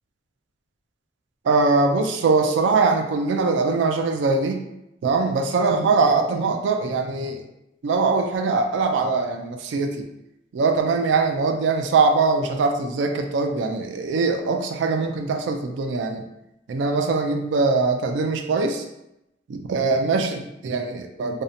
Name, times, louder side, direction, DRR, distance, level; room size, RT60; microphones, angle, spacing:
voice 1, 1.4-4.6 5.0-7.4 7.8-10.1 10.5-16.3 16.7-18.8 19.5-21.4, right 4 dB, 75° right, 4 dB, 0.3 m, -22 dB
2.6 x 2.1 x 2.6 m, 0.87 s
head